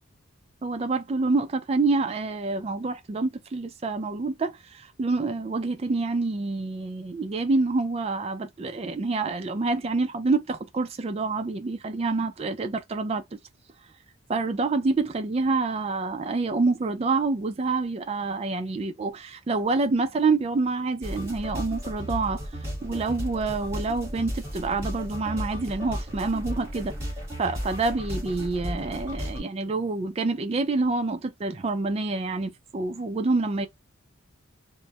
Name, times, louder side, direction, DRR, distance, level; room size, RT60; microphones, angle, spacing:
voice 1, 0.6-13.2 14.3-22.4 22.8-26.9 27.4-33.7, right 3 dB, 30° right, 0.3 m, -27 dB
sound 1, 21.0-29.4, equal, 15° right, 1.1 m, -34 dB
2.2 x 2.0 x 2.7 m
head